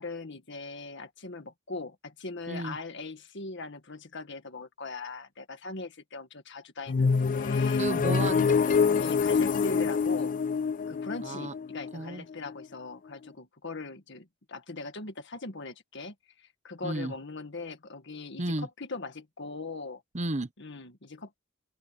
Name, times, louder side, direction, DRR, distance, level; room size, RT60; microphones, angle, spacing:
voice 1, 0.0-7.8 8.8-10.4 10.9-20.0 20.6-21.4, left 3 dB, 60° left, 1.9 m, -40 dB
sound 1, 6.9-12.6, left 5 dB, 40° left, 0.4 m, -26 dB
voice 2, 7.8-8.8 11.2-11.5 11.9-12.2 16.8-17.1 18.4-18.7 20.1-20.5, right 2 dB, 35° right, 1.1 m, -33 dB
open air
head